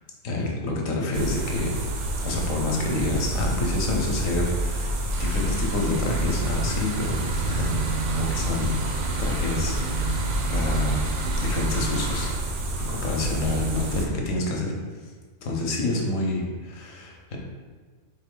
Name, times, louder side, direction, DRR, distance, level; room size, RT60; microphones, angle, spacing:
voice 1, 0.2-1.8 2.2-10.0 10.5-11.0 11.4-14.7 15.4-17.4, left 2 dB, 65° left, -1 dB, 1.1 m, -28 dB
sound 1, 1.1-14.1, right 1 dB, 85° right, 1.2 m, -28 dB
sound 2, 5.1-12.3, right 4 dB, 65° right, 0.7 m, -33 dB
4.2 x 3.1 x 3.7 m, 1.4 s
omnidirectional pair, 1.5 m